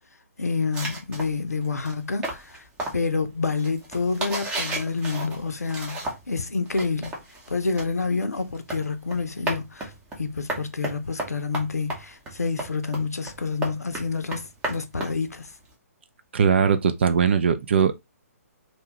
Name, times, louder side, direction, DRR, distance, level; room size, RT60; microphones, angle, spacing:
voice 1, 0.4-2.6 2.9-7.1 7.5-9.9 10.2-15.5, left 4 dB, 75° left, 0.5 m, -28 dB
sound 1, 0.7-6.4 6.7-15.7, right 2 dB, 10° right, 0.7 m, -34 dB
voice 2, 16.3-17.9, right 7 dB, 45° right, 0.3 m, -20 dB
2.7 x 2.3 x 2.9 m
figure-of-eight pair, 135°, 8 cm